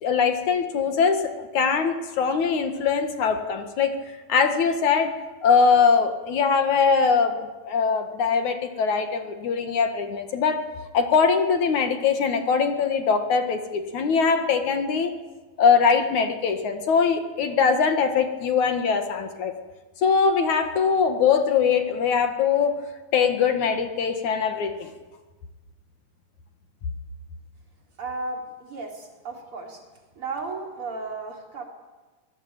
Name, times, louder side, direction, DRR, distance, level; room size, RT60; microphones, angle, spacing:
voice 1, 0.0-3.9 4.3-5.1 5.4-7.4 7.7-10.6 10.9-15.1 15.6-19.5 20.0-22.7 23.1-24.9, left 6 dB, 65° left, 7 dB, 3.0 m, -22 dB
voice 2, 28.0-29.8 30.2-31.6, right 3 dB, 40° right, 1 dB, 4.4 m, -34 dB
25.0 x 20.0 x 8.9 m, 1.3 s
omnidirectional pair, 3.8 m